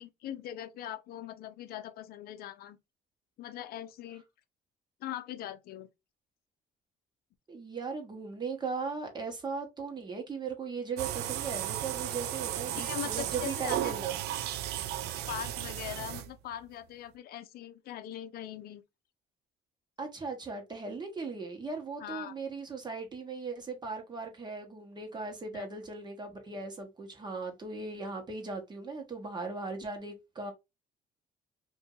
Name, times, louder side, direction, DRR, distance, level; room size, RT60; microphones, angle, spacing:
voice 1, 0.0-2.8 3.4-4.2 5.0-5.9 12.8-13.9 15.3-18.8 22.0-22.3 25.5-25.7, left 11 dB, 65° left, 0.6 m, -41 dB
voice 2, 7.5-14.1 20.0-30.5, right 4 dB, 25° right, 1.3 m, -38 dB
sound 1, 11.0-16.5, right 12 dB, 75° right, 0.4 m, -35 dB
2.7 x 2.7 x 3.8 m
cardioid pair, 110°, 17 cm